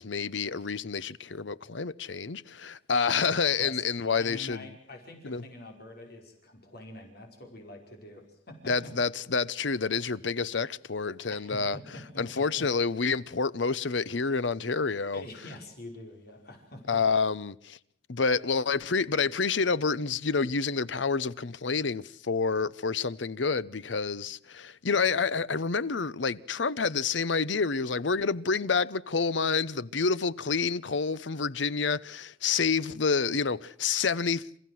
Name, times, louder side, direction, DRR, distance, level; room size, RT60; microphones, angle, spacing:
voice 1, 0.0-4.7 5.2-5.4 8.7-11.8 12.2-15.2 16.9-17.8 18.1-34.6, left 5 dB, 75° left, 0.8 m, -28 dB
voice 2, 3.6-8.9 11.3-12.7 15.1-17.0, left 1 dB, 55° left, 5.0 m, -46 dB
28.0 x 15.5 x 7.8 m
head